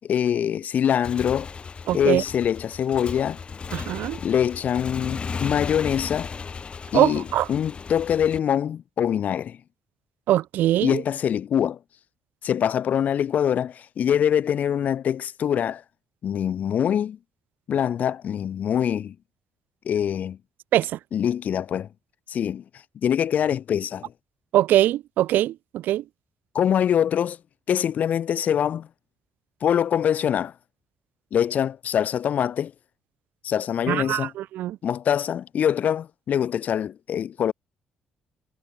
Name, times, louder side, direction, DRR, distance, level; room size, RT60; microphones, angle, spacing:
voice 1, 0.0-1.5 1.9-3.4 4.2-6.3 6.9-9.6 10.8-11.8 12.4-15.8 16.2-17.2 17.7-19.2 19.9-20.4 21.1-21.9 22.3-22.6 23.0-24.1 26.5-27.4 27.7-28.9 29.6-30.5 31.3-32.7 33.4-34.3 34.8-37.5, left 9 dB, 60° left, 7.3 m, -24 dB
Motorcycle / Engine, 0.8-8.4, left 5 dB, 35° left, 6.5 m, -35 dB
voice 2, 1.9-2.2 3.7-4.2 6.9-7.5 10.3-11.0 20.7-21.0 24.5-26.0 33.9-34.8, right 13 dB, 80° right, 4.5 m, -22 dB
cardioid pair, 105°, 3 cm